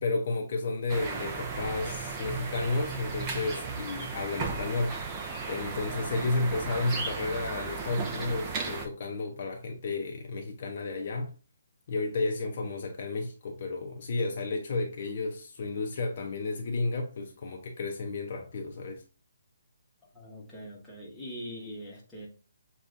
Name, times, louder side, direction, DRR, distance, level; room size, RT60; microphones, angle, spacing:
voice 1, 0.0-5.1 5.5-11.3 11.9-19.0, left 3 dB, 40° left, 0.5 m, -32 dB
sound 1, 0.9-8.9, right 4 dB, 20° right, 0.5 m, -35 dB
voice 2, 20.1-22.3, equal, 5° left, 0.9 m, -42 dB
6.6 x 2.3 x 2.4 m
hypercardioid pair, 170°, 0 cm